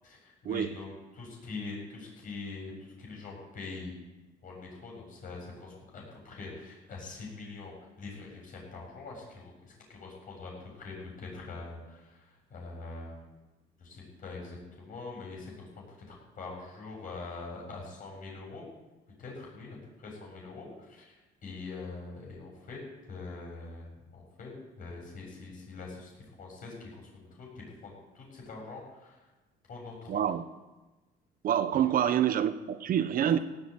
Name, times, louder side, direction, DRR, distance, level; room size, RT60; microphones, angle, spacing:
voice 1, 0.0-3.9 4.4-13.3 13.8-18.7 19.2-22.8 23.1-29.3 29.7-30.2 31.7-31.9, left 3 dB, 55° left, -2 dB, 7.6 m, -44 dB
voice 2, 30.1-30.4 31.4-33.4, right 9 dB, 60° right, 12 dB, 1.2 m, -27 dB
17.5 x 9.0 x 8.5 m, 1.1 s
cardioid pair, 110°, 17 cm